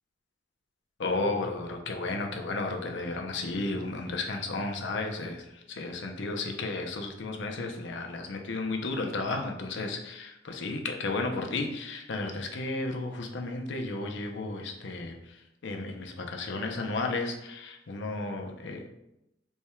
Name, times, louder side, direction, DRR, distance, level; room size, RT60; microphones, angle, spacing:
voice 1, 1.0-18.9, left 3 dB, 65° left, 3 dB, 0.6 m, -33 dB
3.4 x 2.2 x 4.2 m, 0.86 s
head